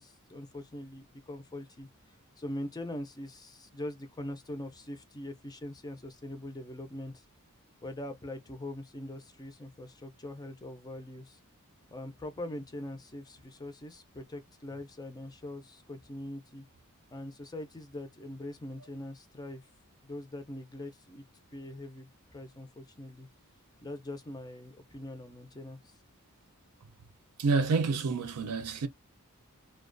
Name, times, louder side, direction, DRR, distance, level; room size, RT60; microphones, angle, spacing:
voice 1, 0.0-7.2 7.8-11.4 11.9-16.6 17.1-19.7 20.0-21.2 21.5-23.3 23.8-26.0, left 1 dB, 20° left, 0.4 m, -42 dB
voice 2, 27.4-28.9, right 4 dB, 80° right, 0.5 m, -28 dB
2.3 x 2.2 x 2.5 m
head